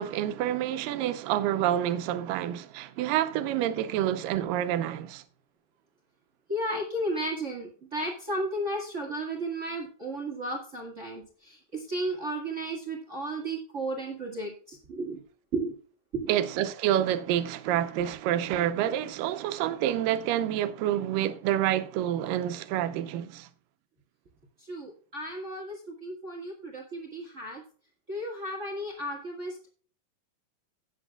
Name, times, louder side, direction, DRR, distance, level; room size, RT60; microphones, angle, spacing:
voice 1, 0.0-5.2 16.3-23.5, right 11 dB, 75° right, 2.3 m, -28 dB
voice 2, 6.5-15.2 15.5-15.7 16.1-16.3 24.6-27.6 28.1-29.7, right 1 dB, 45° right, 0.9 m, -34 dB
17.0 x 7.1 x 2.3 m
omnidirectional pair, 4.4 m